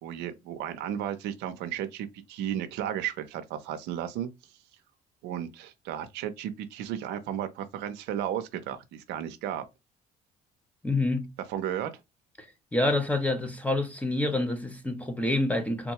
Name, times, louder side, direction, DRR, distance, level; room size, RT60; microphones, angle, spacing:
voice 1, 0.0-4.3 5.2-9.6 11.5-11.9, right 10 dB, 85° right, 0.6 m, -34 dB
voice 2, 10.8-11.3 12.4-12.5 12.7-15.9, left 2 dB, 10° left, 0.7 m, -27 dB
3.5 x 2.3 x 2.8 m
cardioid pair, 110°, 17 cm